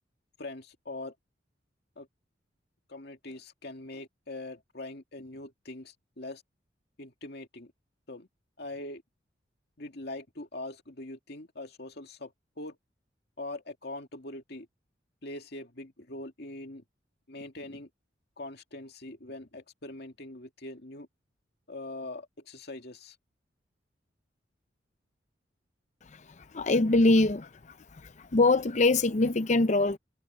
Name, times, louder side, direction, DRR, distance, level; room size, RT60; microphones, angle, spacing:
voice 1, 0.4-1.1 2.0-2.1 2.9-6.4 7.0-7.7 8.1-8.3 8.6-9.0 9.8-12.8 13.4-14.7 15.2-16.8 17.3-17.9 18.4-21.1 21.7-23.2, left 2 dB, 60° left, 2.4 m, -42 dB
voice 2, 26.5-27.5 28.3-30.0, left 2 dB, 40° left, 0.6 m, -22 dB
head